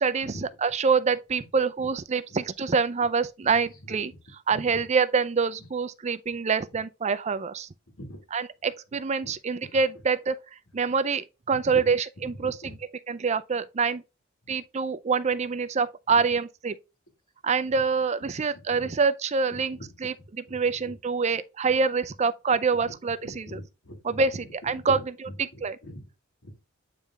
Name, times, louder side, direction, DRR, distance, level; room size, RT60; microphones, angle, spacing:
voice 1, 0.0-7.7 8.3-10.4 10.7-12.5 13.1-14.0 14.5-16.7 17.4-20.1 20.5-23.6 24.0-25.8, right 5 dB, 35° right, 0.4 m, -26 dB
voice 2, 4.5-4.8 8.0-8.2 9.2-9.3 11.6-11.8 12.2-12.8 14.4-14.5 17.7-17.8 18.5-18.9 19.5-19.8 20.5-20.9 22.8-22.9 23.2-24.4 24.9-26.1 26.4-26.6, equal, 85° left, 2.7 m, -43 dB
9.0 x 3.4 x 3.8 m
head